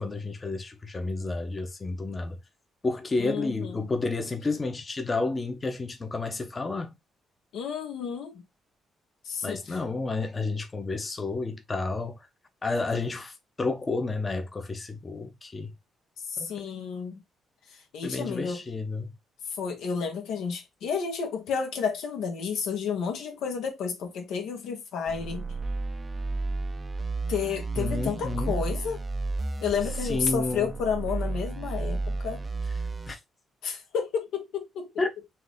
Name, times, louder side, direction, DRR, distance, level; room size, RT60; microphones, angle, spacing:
voice 1, 0.0-2.4 2.8-6.9 9.4-12.2 12.6-15.7 16.4-16.5 18.0-19.1 27.8-28.6 30.1-30.7 33.1-33.2 35.0-35.1, left 3 dB, 25° left, 0.8 m, -31 dB
voice 2, 3.2-3.9 7.5-8.4 9.2-9.8 16.3-17.2 17.7-18.6 19.5-25.4 27.3-29.0 29.6-32.4 33.6-34.9, left 6 dB, 85° left, 1.2 m, -31 dB
sound 1, 25.1-33.1, right 3 dB, 30° right, 0.5 m, -32 dB
4.4 x 2.6 x 3.5 m
cardioid pair, 90°, 0 cm